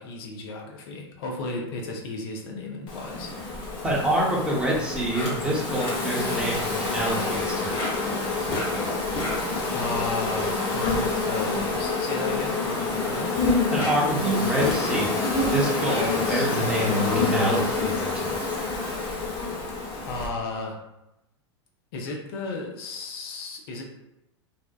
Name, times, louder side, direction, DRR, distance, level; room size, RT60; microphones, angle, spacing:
voice 1, 0.0-3.3 9.7-13.4 16.0-16.7 20.0-20.8 21.9-23.8, left 3 dB, 60° left, 0 dB, 0.5 m, -34 dB
Insect, 2.9-20.3, left 3 dB, 35° left, 0.8 m, -27 dB
voice 2, 3.8-7.7 13.7-15.2 15.5-16.0 16.3-18.3, right 1 dB, 5° right, -5 dB, 0.8 m, -27 dB
2.7 x 2.0 x 2.2 m, 0.90 s
hypercardioid pair, 95°, 14 cm